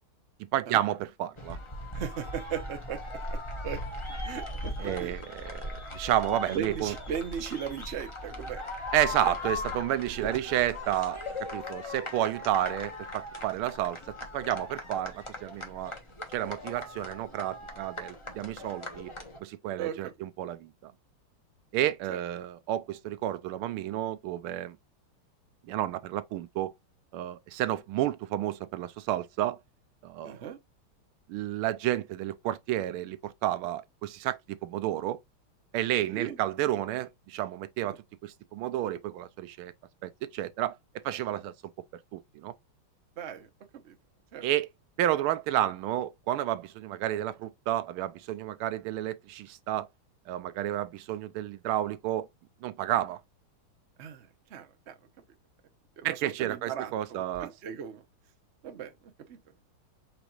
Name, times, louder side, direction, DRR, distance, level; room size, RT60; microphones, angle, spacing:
voice 1, 0.5-1.6 4.8-6.9 8.9-11.2 11.5-14.0 14.3-15.9 16.3-19.1 19.4-20.9 21.7-24.8 25.7-26.7 27.1-29.6 30.0-30.4 31.3-35.2 35.7-39.7 40.0-40.8 41.0-41.5 42.1-42.5 44.4-44.7 45.0-49.9 50.3-52.3 52.6-53.2 56.0-57.5, right 13 dB, 80° right, 1.4 m, -31 dB
sound 1, 1.4-19.4, left 2 dB, 30° left, 0.5 m, -39 dB
voice 2, 1.9-3.0 3.3-3.4 3.6-3.8 4.2-5.1 6.5-8.6 10.2-10.3 19.8-20.1 22.1-22.2 30.2-30.6 36.1-36.4 37.9-38.0 43.2-43.5 43.8-44.0 44.3-44.4 54.0-54.9 56.0-58.1 58.6-59.0 59.3-59.4, right 8 dB, 60° right, 0.7 m, -37 dB
5.1 x 3.3 x 3.0 m
omnidirectional pair, 2.4 m